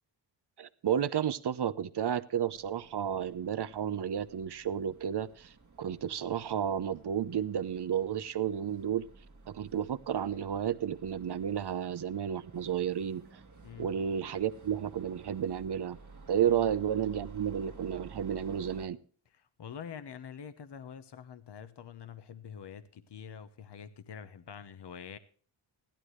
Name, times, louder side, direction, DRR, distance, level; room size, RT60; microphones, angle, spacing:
voice 1, 0.6-9.0 9.5-13.2 13.8-16.0 16.3-19.0, right 9 dB, 55° right, 13 dB, 0.8 m, -32 dB
sound 1, 2.5-18.9, right 4 dB, 35° right, 1.6 m, -54 dB
voice 2, 19.3-25.2, left 7 dB, 55° left, 11 dB, 1.0 m, -46 dB
16.0 x 12.0 x 3.2 m, 0.43 s
cardioid pair, 65°, 48 cm